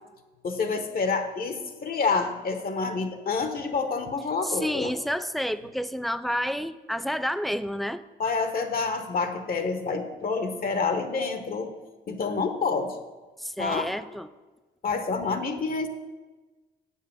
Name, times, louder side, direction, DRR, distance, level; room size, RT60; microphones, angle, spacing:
voice 1, 0.4-4.9 8.2-11.7 12.1-13.0 13.6-13.9 14.8-15.9, left 4 dB, 45° left, 7 dB, 1.0 m, -28 dB
voice 2, 4.4-8.0 13.4-14.3, equal, ahead, 13 dB, 0.4 m, -30 dB
8.0 x 5.6 x 7.0 m, 1.2 s
cardioid pair, 90°, 20 cm